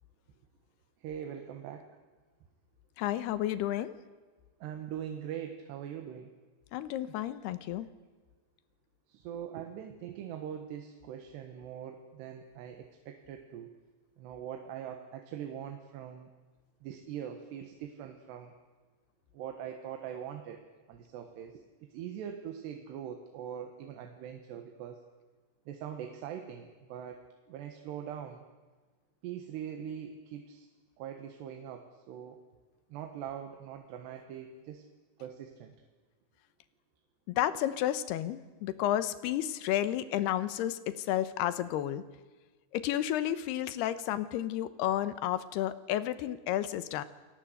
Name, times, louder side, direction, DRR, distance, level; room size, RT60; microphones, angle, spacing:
voice 1, 1.0-1.9 4.6-6.3 9.1-13.7 14.2-16.3 16.8-18.5 19.3-20.6 20.9-25.0 25.7-27.2 27.5-28.4 29.2-30.7 31.0-32.4 32.9-34.8 35.2-35.7, right 9 dB, 85° right, 5 dB, 3.6 m, -42 dB
voice 2, 3.0-4.0 6.7-7.9 37.3-42.0 42.7-47.0, left 12 dB, 80° left, 14 dB, 3.0 m, -31 dB
29.0 x 19.5 x 8.0 m, 1.4 s
omnidirectional pair, 4.7 m